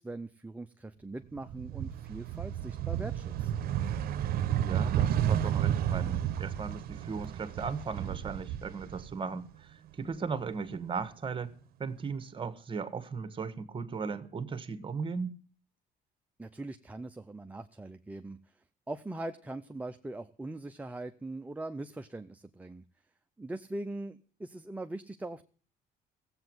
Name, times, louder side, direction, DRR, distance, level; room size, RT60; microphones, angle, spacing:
voice 1, 0.0-3.6 16.4-22.8 23.4-25.4, right 2 dB, 10° right, 0.6 m, -41 dB
sound 1, 1.4-9.5 9.8-11.0, right 10 dB, 65° right, 0.8 m, -32 dB
voice 2, 4.6-11.5 11.8-15.4, right 5 dB, 30° right, 1.3 m, -37 dB
16.0 x 8.1 x 7.8 m
cardioid pair, 110°, 17 cm